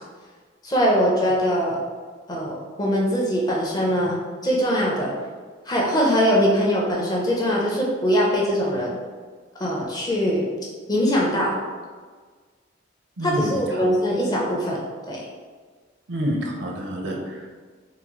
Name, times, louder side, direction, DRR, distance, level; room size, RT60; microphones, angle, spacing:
voice 1, 0.6-1.8 2.3-4.2 4.4-5.1 5.7-9.0 9.6-10.5 10.9-11.5 13.2-14.8 15.1-15.2, equal, 20° left, -3 dB, 0.5 m, -22 dB
voice 2, 13.2-13.9 16.1-17.6, equal, 65° right, 0 dB, 0.5 m, -28 dB
3.7 x 2.0 x 2.9 m, 1.5 s
head